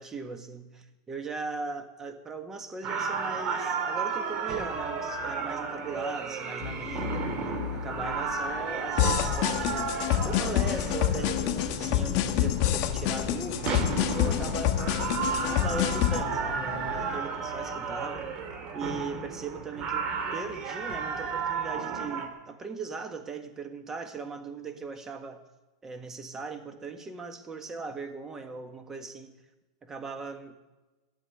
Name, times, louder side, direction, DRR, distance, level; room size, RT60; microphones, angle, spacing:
voice 1, 0.0-7.4 7.7-10.0 10.2-18.3 18.7-25.4 25.8-29.4 29.8-30.6, right 4 dB, 15° right, 7 dB, 1.5 m, -39 dB
sound 1, 2.8-22.3, right 5 dB, 35° right, 2.1 m, -33 dB
sound 2, 6.6-17.2, left 7 dB, 70° left, 3.1 m, -40 dB
sound 3, 9.0-16.2, left 12 dB, 45° left, 1.2 m, -27 dB
15.0 x 7.5 x 9.9 m, 1.1 s
supercardioid pair, 145°, 3 cm